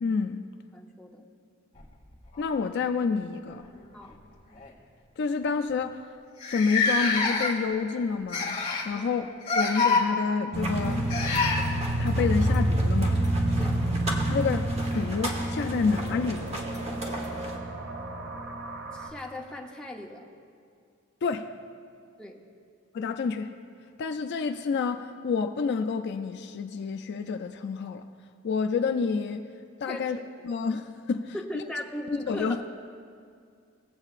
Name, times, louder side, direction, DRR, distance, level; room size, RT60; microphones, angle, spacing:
voice 1, 0.0-0.4 2.4-3.6 5.2-6.0 6.4-8.6 8.9-9.3 9.5-11.1 12.0-13.2 14.3-14.7 14.9-16.5 21.2-21.5 22.9-23.5 24.0-28.0 28.4-29.5 29.8-30.2 30.4-31.3 32.3-32.6, left 5 dB, 55° left, 7 dB, 0.3 m, -28 dB
voice 2, 0.7-1.2 3.9-4.2 8.9-9.1 13.6-13.8 18.9-20.3 22.2-22.4 29.9-30.0 31.3-32.7, left 1 dB, 5° left, -1 dB, 0.7 m, -38 dB
sound 1, 1.7-2.9 4.0-4.1 4.5-4.7 5.4-5.5 5.7-5.8 6.4-7.7 8.3-8.9 9.4-10.0 11.1-11.6 13.8-13.9 14.9-15.0, left 4 dB, 25° left, 1.7 m, -26 dB
sound 2, 10.5-17.6, right 1 dB, 30° right, 1.1 m, -38 dB
sound 3, 10.5-19.1, right 1 dB, 50° right, 0.8 m, -28 dB
18.5 x 8.0 x 2.4 m, 2.3 s
head